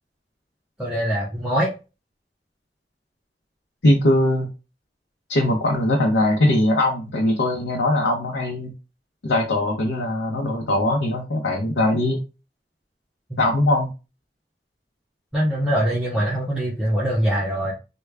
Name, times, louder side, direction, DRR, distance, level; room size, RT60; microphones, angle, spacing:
voice 1, 0.8-1.7 13.3-13.4 15.3-17.7, equal, 5° right, -8 dB, 0.8 m, -23 dB
voice 2, 3.8-4.5 5.3-8.7 9.2-12.2 13.4-13.9, left 1 dB, 85° left, -1 dB, 0.7 m, -21 dB
3.2 x 2.2 x 3.5 m, 0.30 s
head